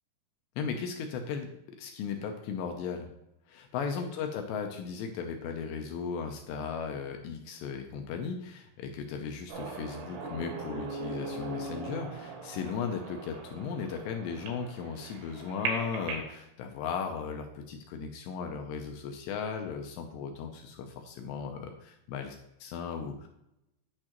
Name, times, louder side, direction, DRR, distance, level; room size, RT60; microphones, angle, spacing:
voice 1, 0.6-1.5 1.8-3.1 3.5-23.3, left 6 dB, 80° left, 4 dB, 2.6 m, -36 dB
sound 1, 9.5-16.3, right 3 dB, 80° right, 4.0 m, -39 dB
9.7 x 6.7 x 3.0 m, 0.85 s
omnidirectional pair, 5.4 m